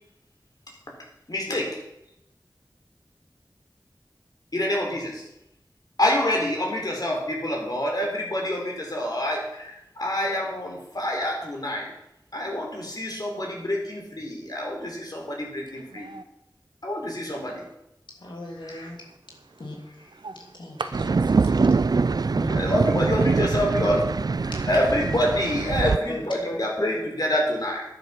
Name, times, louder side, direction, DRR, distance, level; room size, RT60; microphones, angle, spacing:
voice 1, 1.3-1.8 4.5-5.2 6.0-11.9 12.3-16.1 16.8-17.6 22.5-24.1 24.6-27.8, left 1 dB, 55° left, 0 dB, 4.2 m, -26 dB
voice 2, 15.7-16.2 20.1-21.9, right 3 dB, 90° right, 10 dB, 1.0 m, -39 dB
voice 3, 18.2-19.0 19.6-20.2 20.5-20.8 21.7-21.9 22.3-22.5 24.5-24.7 25.8-26.6, left 1 dB, 85° left, 0 dB, 2.8 m, -37 dB
sound 1, 20.9-26.0, right 4 dB, 55° right, 0.4 m, -23 dB
11.5 x 10.0 x 6.0 m, 0.84 s
wide cardioid pair, 45°, 8 cm